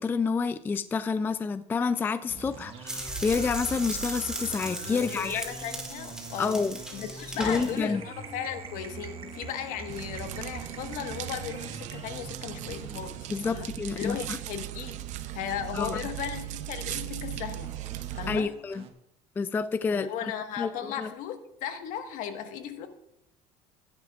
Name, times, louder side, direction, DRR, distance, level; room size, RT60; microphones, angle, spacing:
voice 1, 0.0-5.4 6.4-6.8 7.4-8.0 13.3-14.4 15.7-16.0 18.3-18.9 19.4-20.1 20.6-21.1, left 5 dB, 15° left, 12 dB, 0.3 m, -29 dB
sound 1, 2.3-15.3 16.3-18.9, right 5 dB, 40° right, 1.4 m, -44 dB
sound 2, 2.9-7.8, right 1 dB, 5° right, 2.2 m, -37 dB
voice 2, 4.8-6.6 6.9-13.7 14.0-15.1 15.3-17.8 18.1-18.5 19.9-22.9, left 9 dB, 65° left, 7 dB, 1.4 m, -36 dB
sound 3, 9.9-18.4, right 13 dB, 55° right, 0.6 m, -38 dB
16.5 x 11.0 x 2.4 m, 0.78 s
cardioid pair, 140°, 14 cm